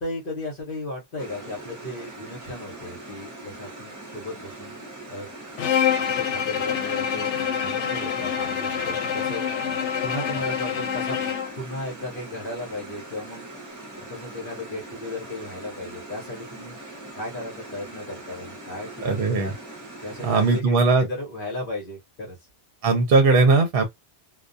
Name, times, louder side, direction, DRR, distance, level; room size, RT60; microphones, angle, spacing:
voice 1, 0.0-4.8 5.1-5.3 6.2-7.3 7.6-9.5 9.8-11.2 11.6-13.5 14.0-16.8 17.1-19.5 20.0-22.4, left 1 dB, 50° left, 1.0 m, -35 dB
sound 1, 1.2-20.6, right 2 dB, 20° right, 0.6 m, -41 dB
Bowed string instrument, 5.6-11.6, left 8 dB, 80° left, 0.9 m, -26 dB
voice 2, 19.0-19.5 20.2-21.0 22.8-23.8, right 3 dB, 60° right, 0.8 m, -19 dB
2.2 x 2.2 x 2.5 m
omnidirectional pair, 1.2 m